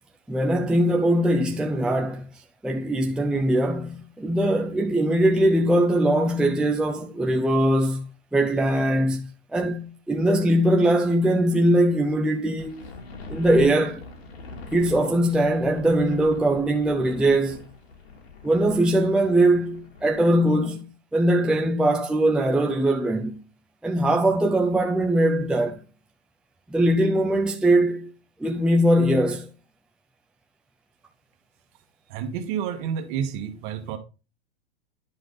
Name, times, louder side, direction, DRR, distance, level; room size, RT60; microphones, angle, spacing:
voice 1, 0.3-2.2 2.6-8.1 8.3-12.8 13.3-14.0 14.7-17.6 18.4-23.4 23.8-25.8 26.7-28.1 28.4-29.5, right 1 dB, 5° right, 0.6 m, -21 dB
sound 1, 12.6-20.2, left 3 dB, 70° left, 2.8 m, -43 dB
voice 2, 32.1-34.0, right 8 dB, 50° right, 1.7 m, -29 dB
10.5 x 5.1 x 4.0 m
hypercardioid pair, 110°, 32 cm